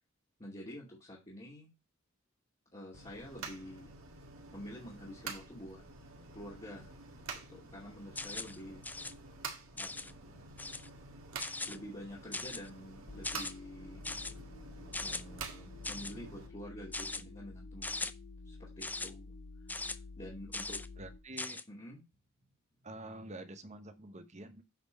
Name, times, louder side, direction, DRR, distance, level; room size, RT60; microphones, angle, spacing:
voice 1, 0.4-1.7 2.7-3.9 4.5-5.8 6.3-6.9 7.3-8.8 9.7-10.6 11.7-14.0 15.0-18.1 18.4-19.3 19.8-20.8 21.7-22.0, equal, 25° left, -5 dB, 2.4 m, -48 dB
sound 1, 2.9-16.5, right 4 dB, 80° right, 1.9 m, -48 dB
sound 2, 8.2-8.6 8.8-9.1 9.8-10.1 10.6-10.9 11.4-11.8 12.3-12.7 13.2-13.5 14.0-14.3 14.9-15.2 15.8-16.1 16.9-17.2 17.8-18.1 18.8-19.1 19.7-19.9 20.5-20.9 21.4-21.6, left 3 dB, 10° left, 0.4 m, -39 dB
sound 3, 13.1-21.2, left 3 dB, 50° left, 0.8 m, -50 dB
voice 2, 21.0-21.6 22.8-24.6, right 1 dB, 35° right, 10 dB, 1.0 m, -47 dB
8.3 x 4.4 x 5.2 m, 0.25 s
head